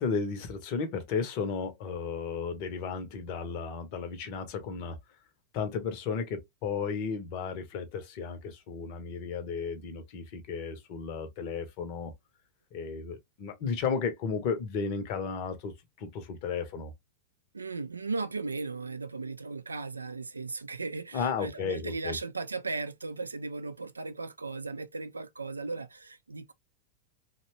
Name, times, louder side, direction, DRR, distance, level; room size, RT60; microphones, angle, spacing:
voice 1, 0.0-5.0 5.5-12.1 12.7-16.9 21.1-22.2, left 5 dB, 45° left, 0.7 m, -34 dB
voice 2, 17.5-26.5, right 3 dB, 80° right, 0.3 m, -36 dB
2.8 x 2.2 x 2.8 m
figure-of-eight pair, 90°, 0 cm